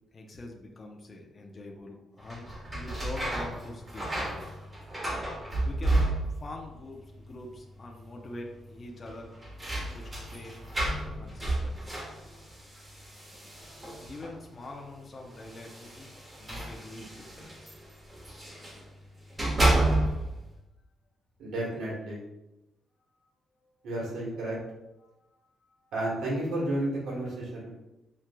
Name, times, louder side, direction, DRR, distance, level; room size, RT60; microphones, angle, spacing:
voice 1, 0.1-4.5 5.6-6.1 6.4-9.4 9.9-10.6 11.1-11.9 14.0-16.1 16.4-17.7 23.1-23.3 25.0-25.9, left 2 dB, 35° left, 0 dB, 0.6 m, -44 dB
sound 1, 2.2-6.6 6.9-7.5 7.8-7.9 9.0-14.4 15.3-18.8 19.2-20.4, right 1 dB, 20° right, 1.2 m, -31 dB
voice 2, 21.4-22.2 23.8-24.6 25.9-27.7, right 1 dB, 85° right, -5 dB, 1.2 m, -32 dB
6.0 x 2.6 x 2.2 m, 0.95 s
cardioid pair, 110°, 0 cm